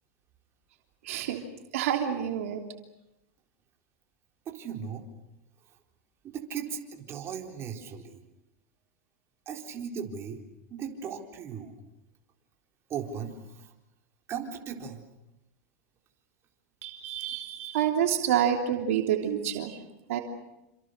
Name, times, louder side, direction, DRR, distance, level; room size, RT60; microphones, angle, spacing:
voice 1, 1.0-1.4 1.7-2.6 16.8-19.8 20.1-20.2, right 9 dB, 75° right, 3 dB, 3.2 m, -28 dB
voice 2, 4.5-5.1 6.2-8.2 9.5-10.4 10.7-11.8 12.9-13.7 14.3-15.0, right 7 dB, 35° right, 2 dB, 4.0 m, -37 dB
27.5 x 26.5 x 6.7 m, 0.92 s
supercardioid pair, 120°, 8 cm